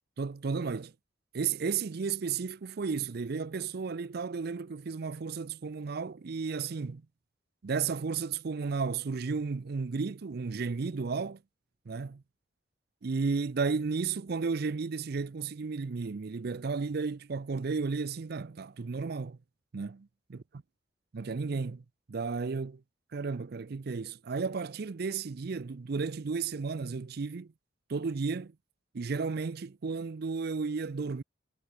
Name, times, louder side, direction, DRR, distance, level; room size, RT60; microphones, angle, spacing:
voice 1, 0.2-0.9 1.3-7.0 7.6-11.4 11.9-12.2 13.0-19.4 19.7-20.4 21.1-22.8 23.1-27.5 27.9-28.5 28.9-31.2, right 5 dB, 55° right, 0.5 m, -33 dB
head